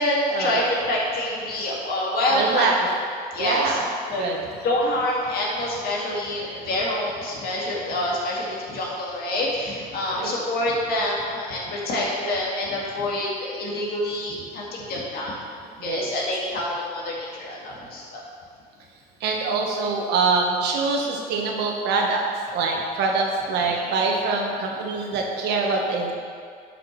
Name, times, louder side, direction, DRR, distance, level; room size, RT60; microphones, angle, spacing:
voice 1, 0.0-2.7 3.3-3.8 4.1-15.4 15.8-18.2, left 1 dB, 65° left, -4 dB, 2.1 m, -26 dB
voice 2, 2.3-2.8 3.4-3.9 4.2-4.4 10.2-10.3 15.8-16.1 19.2-22.2 22.5-26.1, right 4 dB, 80° right, 0 dB, 1.3 m, -24 dB
11.5 x 6.0 x 3.3 m, 2.2 s
cardioid pair, 110°, 17 cm